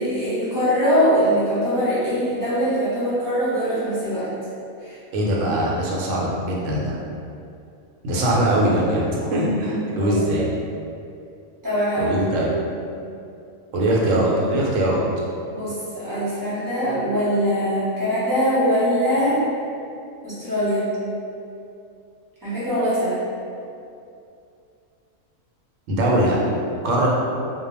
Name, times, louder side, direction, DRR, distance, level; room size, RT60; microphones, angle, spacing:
voice 1, 0.0-4.3 4.8-5.0 8.1-8.2 9.2-9.5 9.8-10.4 11.6-12.1 12.6-12.8 15.5-19.4 20.2-20.9 22.4-23.1, equal, 20° right, -12 dB, 0.6 m, -22 dB
voice 2, 5.1-7.0 8.0-10.5 12.0-12.5 13.7-15.0 25.9-26.4 26.7-27.1, right 1 dB, 75° right, -4 dB, 0.9 m, -21 dB
2.2 x 2.1 x 3.0 m, 2.5 s
omnidirectional pair, 1.4 m